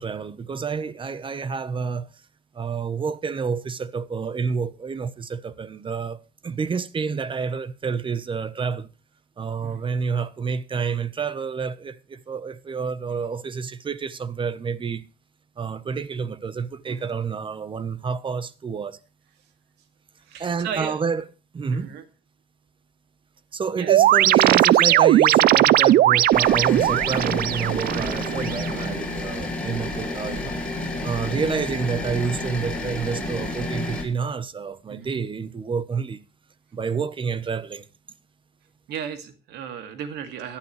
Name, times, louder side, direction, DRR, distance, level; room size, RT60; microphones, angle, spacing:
voice 1, 0.0-2.1 2.5-8.9 9.4-15.0 15.6-19.0 20.4-21.2 21.5-21.9 23.5-36.2 36.7-37.8, right 5 dB, 30° right, 1.1 m, -29 dB
voice 2, 20.3-21.0 21.7-22.0 23.8-23.9 34.9-35.2 38.9-40.6, right 8 dB, 80° right, 2.4 m, -35 dB
sound 1, 23.9-28.9, right 13 dB, 65° right, 0.5 m, -18 dB
sound 2, 26.3-34.0, left 2 dB, 5° left, 6.3 m, -30 dB
17.5 x 11.5 x 3.3 m
cardioid pair, 110°, 17 cm